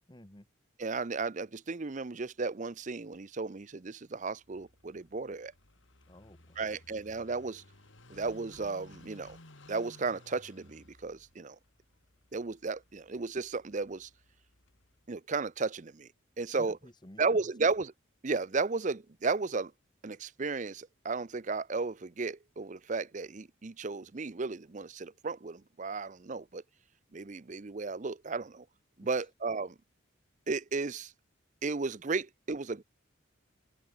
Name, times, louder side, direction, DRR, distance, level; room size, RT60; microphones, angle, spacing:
voice 1, 0.1-0.5 6.1-6.8 16.5-17.5 29.0-29.3, left 1 dB, 20° left, 1.5 m, -53 dB
voice 2, 0.8-5.5 6.6-7.6 8.1-9.4 9.7-11.6 12.3-14.1 15.1-16.1 16.4-16.8 17.2-17.9 18.2-19.7 20.0-26.6 27.1-28.6 29.0-29.7 30.5-31.1 31.6-32.8, right 4 dB, 35° right, 0.6 m, -34 dB
Car passing by / Idling, 4.4-15.1, left 1 dB, 65° left, 3.0 m, -58 dB
open air
head